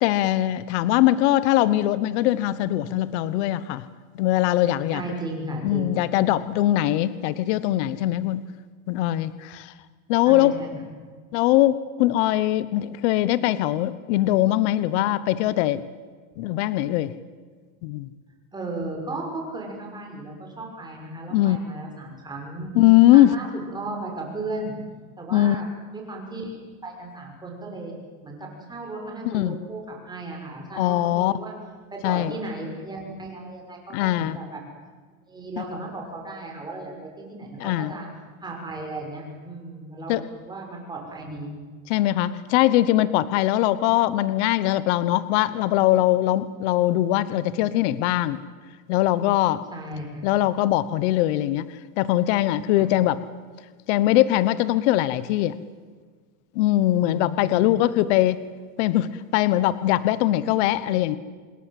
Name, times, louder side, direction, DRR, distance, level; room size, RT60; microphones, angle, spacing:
voice 1, 0.0-3.9 4.2-5.0 5.6-8.4 8.9-9.7 10.1-10.8 11.3-15.8 16.4-17.1 17.8-18.1 21.3-21.6 22.7-23.3 25.3-25.7 29.2-29.6 30.7-31.3 32.0-32.3 33.9-34.4 35.6-35.7 37.6-37.9 40.1-40.2 41.9-48.4 48.9-49.6 50.2-51.7 52.0-53.2 53.9-55.6 56.5-58.4 58.8-61.2, left 14 dB, 50° left, 16 dB, 1.2 m, -21 dB
voice 2, 4.9-6.0 10.2-10.8 18.5-22.7 23.1-24.8 25.2-25.7 25.9-27.9 28.2-28.4 28.7-31.5 31.9-34.6 35.3-38.1 38.4-41.5 49.7-50.2 52.8-52.9 57.0-57.8, right 2 dB, 10° right, 0 dB, 6.5 m, -35 dB
27.0 x 21.0 x 7.8 m, 1.5 s
supercardioid pair, 160°, 43 cm